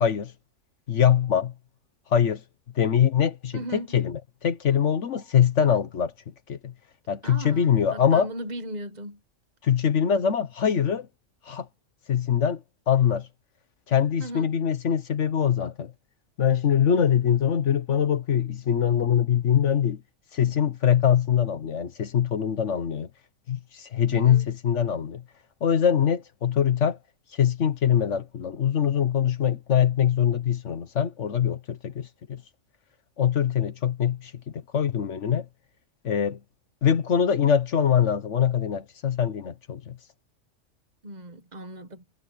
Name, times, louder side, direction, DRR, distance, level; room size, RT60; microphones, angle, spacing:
voice 1, 0.0-0.3 0.9-1.5 2.1-2.4 2.8-4.1 4.4-6.1 6.5-6.7 7.1-8.3 9.6-11.1 11.5-11.7 12.1-13.3 13.9-15.9 16.4-20.0 20.3-23.1 23.5-25.2 25.6-27.0 27.4-32.4 33.2-35.4 36.0-36.4 36.8-39.9, left 8 dB, 70° left, 1.3 m, -23 dB
voice 2, 3.5-4.0 7.2-9.2 14.2-14.5 24.1-24.5 41.0-42.0, right 1 dB, 35° right, 1.7 m, -37 dB
omnidirectional pair, 1.3 m